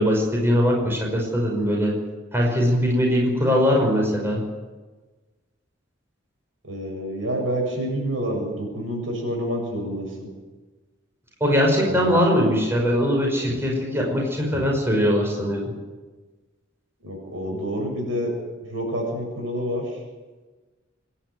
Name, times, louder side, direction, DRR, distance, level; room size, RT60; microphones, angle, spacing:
voice 1, 0.0-1.9 2.3-4.4 11.4-15.6, equal, 10° right, -1 dB, 5.6 m, -21 dB
voice 2, 6.6-10.3 11.8-12.5 17.0-18.3 18.7-19.8, equal, 75° right, 1 dB, 7.7 m, -28 dB
25.5 x 11.5 x 9.6 m, 1.3 s
head